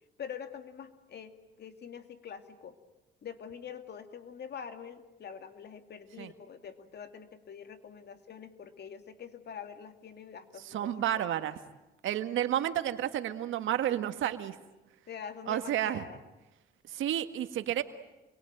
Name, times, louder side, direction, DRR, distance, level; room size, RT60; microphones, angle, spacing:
voice 1, 0.2-2.8 3.2-11.3 15.1-16.2, left 7 dB, 55° left, 8 dB, 2.5 m, -45 dB
voice 2, 10.6-11.6 12.0-14.5 15.5-16.0 16.9-17.8, right 11 dB, 80° right, 9 dB, 1.7 m, -31 dB
28.5 x 22.5 x 9.1 m, 1.0 s
cardioid pair, 90°, 20 cm